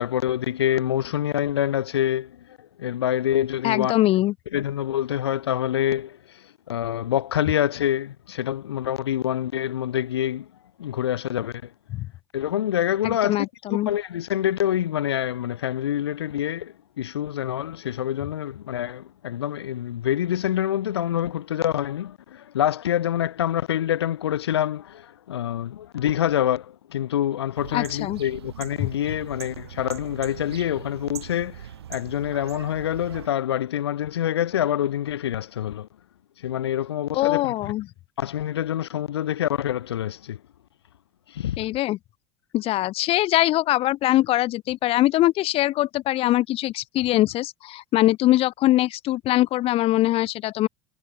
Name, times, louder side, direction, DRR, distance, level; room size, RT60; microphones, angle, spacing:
voice 1, 0.0-2.4 2.8-3.9 4.5-6.2 6.7-10.5 10.8-11.7 12.3-13.4 13.7-35.9 36.4-37.7 38.2-40.4 41.3-41.6, left 11 dB, 75° left, 0.6 m, -26 dB
voice 2, 3.6-4.3 11.9-12.1 13.0-13.9 27.7-28.2 28.8-28.9 37.1-37.8 41.6-42.0 42.5-50.7, left 16 dB, 45° left, 1.9 m, -22 dB
sound 1, 27.5-33.3, right 10 dB, 70° right, 2.0 m, -40 dB
figure-of-eight pair, 70°, 14 cm